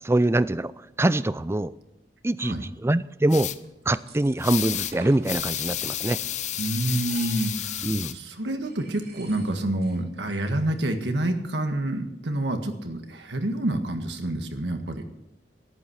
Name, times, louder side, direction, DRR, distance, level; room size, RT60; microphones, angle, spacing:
voice 1, 0.0-0.7 1.0-1.7 2.2-3.5 3.9-6.2 7.8-8.2, right 1 dB, 15° right, 16 dB, 0.4 m, -24 dB
sound 1, 3.3-3.6 4.4-4.9 5.2-8.1, left 11 dB, 40° left, 0.6 m, -31 dB
sound 2, 3.6-5.3 5.8-6.3 6.6-7.8 8.1-8.2 8.6-10.0 10.2-10.3 10.6-11.1, right 4 dB, 60° right, 3.6 m, -47 dB
voice 2, 6.6-15.0, right 1 dB, 85° right, 6 dB, 1.7 m, -28 dB
13.5 x 11.5 x 5.9 m, 0.87 s
head